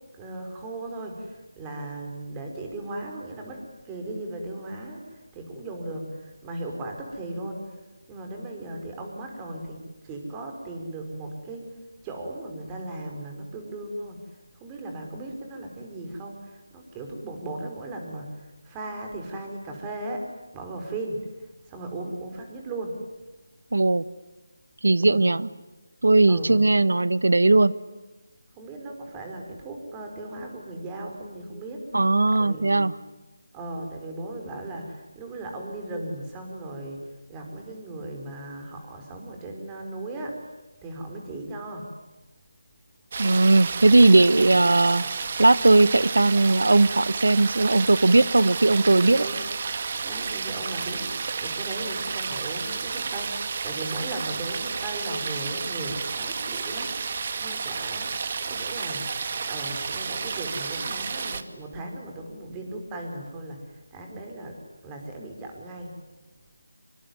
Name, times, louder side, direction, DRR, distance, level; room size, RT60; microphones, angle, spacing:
voice 1, 0.1-7.8 8.1-11.8 12.0-20.3 20.5-23.0 25.0-25.3 26.3-26.7 28.5-31.9 32.3-32.8 33.5-37.0 37.3-40.4 40.8-41.9 49.1-49.4 50.0-59.1 59.5-65.9, right 2 dB, 15° right, 3 dB, 4.8 m, -37 dB
voice 2, 23.7-24.0 24.8-25.5 26.0-27.7 31.9-32.9 43.2-45.0 45.4-49.3, right 2 dB, 75° right, 17 dB, 1.2 m, -18 dB
sound 1, 43.1-61.4, right 5 dB, 40° right, 1.7 m, -31 dB
26.0 x 24.5 x 9.5 m, 1.1 s
figure-of-eight pair, 165°, 0 cm